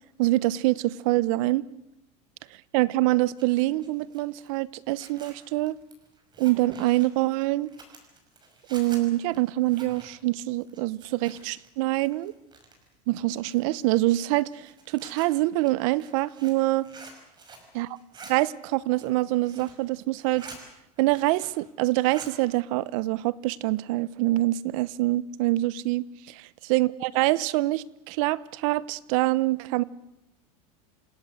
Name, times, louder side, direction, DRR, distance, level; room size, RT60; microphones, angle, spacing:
voice 1, 0.2-1.6 2.7-5.8 6.4-7.7 8.7-12.3 13.1-16.9 17.7-17.9 18.3-20.5 21.0-26.0 26.7-29.8, right 18 dB, 60° right, 19 dB, 1.0 m, -25 dB
Zipper (clothing), 3.1-11.7 11.9-12.9 13.4-17.7 18.0-18.3 18.8-19.8 20.1-20.6 21.0-21.7 21.9-22.3, right 3 dB, 25° right, 5.8 m, -49 dB
27.5 x 17.0 x 7.9 m, 0.84 s
supercardioid pair, 135°, 19 cm